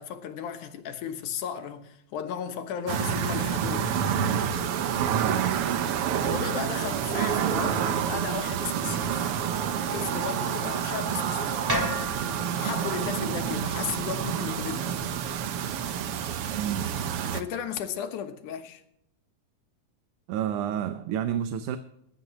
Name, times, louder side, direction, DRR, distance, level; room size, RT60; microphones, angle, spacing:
voice 1, 0.0-3.9 6.3-9.3 9.9-11.6 12.5-15.0 17.2-18.8, left 8 dB, 85° left, 2.7 m, -35 dB
sound 1, 2.9-17.4, right 8 dB, 70° right, 1.4 m, -28 dB
voice 2, 5.1-5.6 16.6-16.9 20.3-21.8, right 10 dB, 85° right, 2.2 m, -29 dB
sound 2, 11.7-15.8, equal, 10° right, 1.7 m, -36 dB
21.5 x 11.0 x 3.0 m
omnidirectional pair, 3.5 m